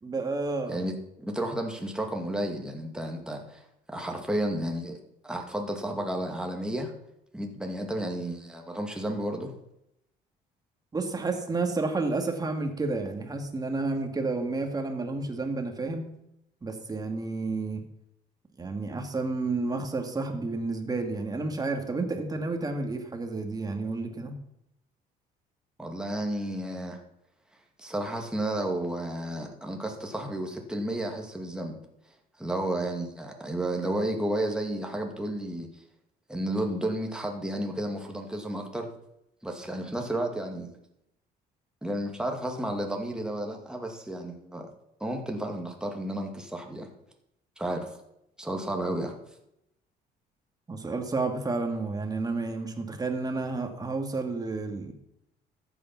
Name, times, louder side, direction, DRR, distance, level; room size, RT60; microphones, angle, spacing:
voice 1, 0.0-0.9 10.9-16.1 16.6-17.8 18.6-24.4 50.7-54.9, right 3 dB, 20° right, 4 dB, 2.3 m, -31 dB
voice 2, 1.2-3.6 3.9-6.9 7.3-9.5 25.8-27.0 27.8-31.8 32.4-35.7 36.3-38.9 39.4-40.8 41.8-44.7 45.0-46.9 47.6-47.9 48.4-49.1, right 1 dB, 5° right, 2 dB, 2.4 m, -32 dB
13.5 x 8.9 x 6.0 m, 0.79 s
cardioid pair, 110°, 17 cm